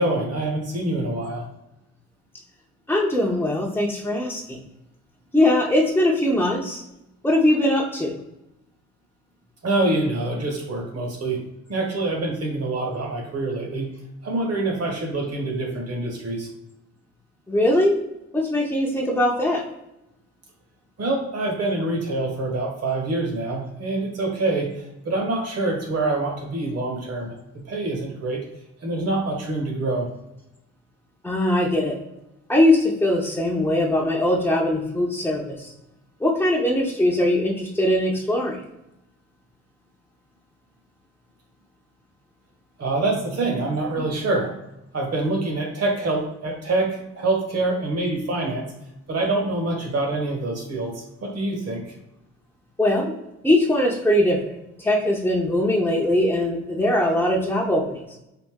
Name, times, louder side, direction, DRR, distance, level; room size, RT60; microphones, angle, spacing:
voice 1, 0.0-1.5 9.6-11.4 11.7-13.9 14.2-16.5 21.0-27.4 27.7-28.4 28.8-30.1 42.8-44.5 44.9-48.7 49.1-51.8, right 2 dB, 55° right, 1 dB, 1.5 m, -25 dB
voice 2, 2.9-4.6 5.3-6.8 7.2-8.1 17.5-18.0 18.3-19.6 31.2-32.0 32.5-35.7 36.2-38.6 52.8-53.1 53.4-58.0, left 1 dB, 5° left, -4 dB, 0.7 m, -21 dB
4.1 x 2.6 x 3.6 m, 0.89 s
cardioid pair, 90°, 30 cm